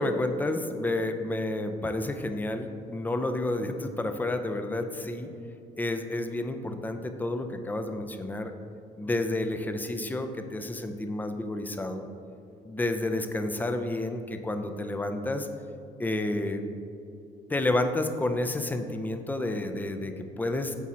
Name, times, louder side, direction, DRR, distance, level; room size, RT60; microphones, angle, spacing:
voice 1, 0.0-5.3 5.8-8.5 9.0-12.0 12.7-15.5 16.0-16.6 17.5-20.8, left 2 dB, 10° left, 7 dB, 0.5 m, -30 dB
8.2 x 2.8 x 6.1 m, 2.6 s
cardioid pair, 110°, 17 cm